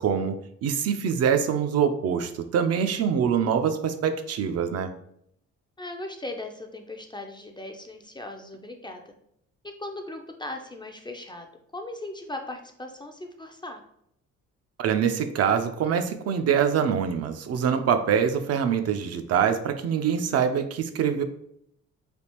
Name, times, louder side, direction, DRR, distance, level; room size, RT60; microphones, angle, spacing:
voice 1, 0.0-4.9 14.8-21.2, right 7 dB, 55° right, 8 dB, 0.4 m, -24 dB
voice 2, 5.8-9.0 9.6-13.8, left 2 dB, 15° left, 4 dB, 0.3 m, -38 dB
3.4 x 2.4 x 2.9 m, 0.73 s
cardioid pair, 90°, 30 cm